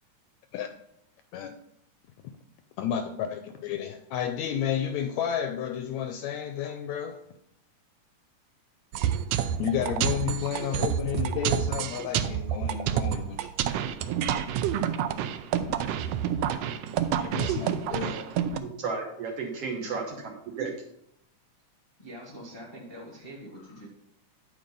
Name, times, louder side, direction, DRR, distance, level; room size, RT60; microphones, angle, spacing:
voice 1, 2.8-7.2 9.6-13.5 17.1-18.2, left 9 dB, 80° left, 8 dB, 1.7 m, -31 dB
sound 1, 8.9-18.6, right 9 dB, 85° right, 1.5 m, -28 dB
voice 2, 18.5-20.7, right 4 dB, 65° right, 1 dB, 1.6 m, -34 dB
voice 3, 22.0-23.9, equal, 40° left, -3 dB, 0.7 m, -44 dB
9.3 x 5.0 x 5.4 m, 0.75 s
omnidirectional pair, 3.6 m